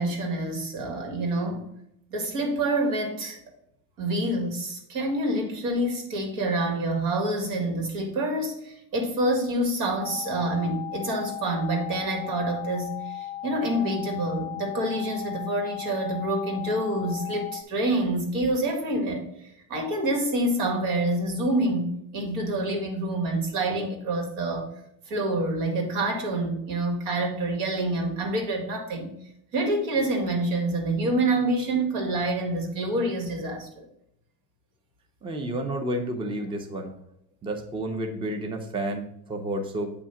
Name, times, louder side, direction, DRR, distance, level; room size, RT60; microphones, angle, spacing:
voice 1, 0.0-1.7 2.1-3.4 4.0-24.7 25.1-29.1 29.5-33.9, right 1 dB, 80° right, 2 dB, 2.0 m, -27 dB
sound 1, 10.0-17.6, left 12 dB, 75° left, 0.5 m, -36 dB
voice 2, 35.2-36.9 37.4-39.9, right 1 dB, 15° right, 4 dB, 0.6 m, -30 dB
8.4 x 2.8 x 5.6 m, 0.77 s
cardioid pair, 160°, 33 cm